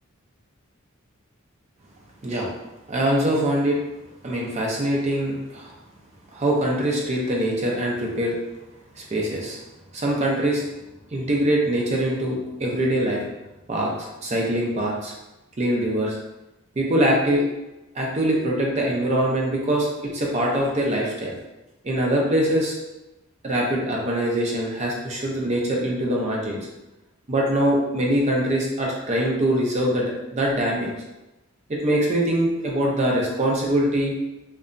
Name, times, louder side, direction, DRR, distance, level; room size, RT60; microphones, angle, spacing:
voice 1, 2.9-3.8 4.2-5.7 6.3-8.4 8.9-9.6 9.9-10.6 11.1-13.2 13.7-15.1 15.6-16.2 16.8-17.4 17.9-21.3 21.8-22.7 23.4-26.6 27.3-30.9 31.7-34.2, right 1 dB, 35° right, -2 dB, 0.5 m, -23 dB
2.8 x 2.2 x 2.5 m, 1.0 s
head